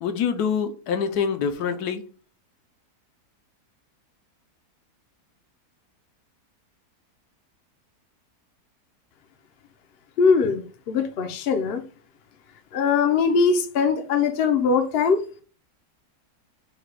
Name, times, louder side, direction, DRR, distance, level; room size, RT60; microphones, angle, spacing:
voice 1, 0.0-2.0, left 6 dB, 80° left, 1.2 m, -25 dB
voice 2, 10.2-11.8 12.7-15.2, left 5 dB, 60° left, 0.6 m, -21 dB
4.9 x 2.2 x 4.7 m
omnidirectional pair, 1.7 m